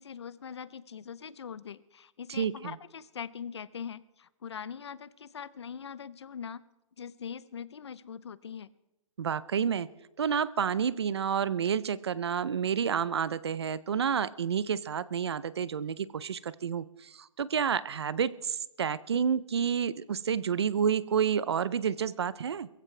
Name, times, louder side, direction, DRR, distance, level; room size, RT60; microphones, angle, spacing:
voice 1, 0.0-6.6 7.0-8.7, left 7 dB, 50° left, 18 dB, 0.7 m, -42 dB
voice 2, 2.3-2.8 9.2-9.9 10.2-22.7, right 7 dB, 50° right, 18 dB, 0.6 m, -29 dB
22.0 x 15.5 x 3.3 m, 0.97 s
hypercardioid pair, 180°, 17 cm